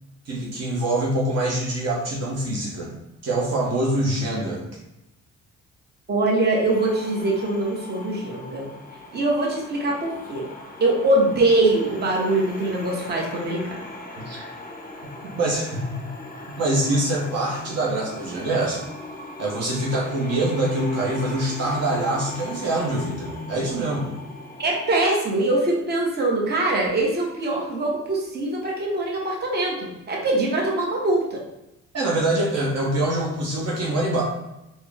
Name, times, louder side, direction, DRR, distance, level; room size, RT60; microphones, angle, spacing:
voice 1, 0.3-2.9 3.2-4.6 14.3-14.5 15.2-16.1 16.6-18.9 19.4-24.1 31.9-34.2, right 1 dB, 55° right, -3 dB, 0.9 m, -24 dB
voice 2, 6.1-8.7 9.1-10.5 10.8-13.8 24.6-31.4, right 2 dB, 35° right, -2 dB, 1.0 m, -23 dB
sound 1, 6.7-25.1, left 2 dB, 30° left, 0.7 m, -40 dB
3.7 x 2.1 x 3.4 m, 0.91 s
cardioid pair, 90°, 30 cm